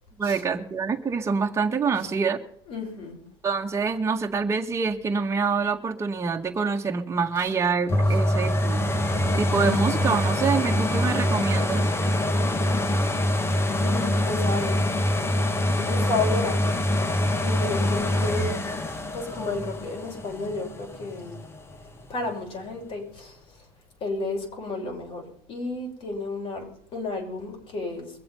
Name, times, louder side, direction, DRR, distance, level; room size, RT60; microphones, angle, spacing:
voice 1, 0.2-2.4 3.4-8.8 9.4-11.9, right 5 dB, 25° right, 2 dB, 1.8 m, -26 dB
voice 2, 2.7-3.2 13.8-14.9 15.8-16.7 17.4-18.5 19.1-21.4 22.1-23.4 24.0-28.1, left 2 dB, 50° left, 1 dB, 6.2 m, -32 dB
sound 1, 7.9-21.6 22.1-22.2, left 1 dB, 20° left, 1.5 m, -24 dB
23.0 x 7.7 x 5.7 m, 0.69 s
supercardioid pair, 105°, 12 cm